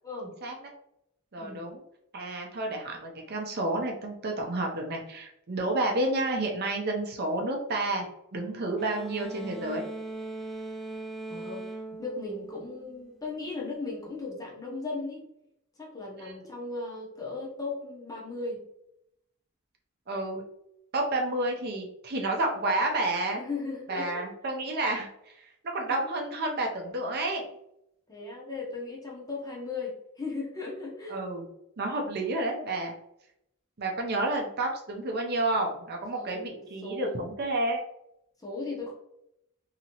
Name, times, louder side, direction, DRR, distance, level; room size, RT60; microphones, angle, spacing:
voice 1, 1.3-1.8 2.1-8.1 8.3-9.8 16.2-16.4 20.1-20.4 20.9-23.4 23.9-25.1 25.7-27.4 31.1-31.5 31.8-32.9 33.8-37.8, right 2 dB, 50° right, 2 dB, 0.6 m, -30 dB
sound 1, 8.8-13.2, right 2 dB, ahead, 0.3 m, -40 dB
voice 2, 11.3-11.7 12.0-15.2 15.8-18.6 23.3-24.3 25.9-26.0 28.1-31.2 36.1-37.3 38.4-38.9, left 3 dB, 15° left, -3 dB, 0.7 m, -37 dB
2.8 x 2.7 x 2.8 m, 0.79 s
head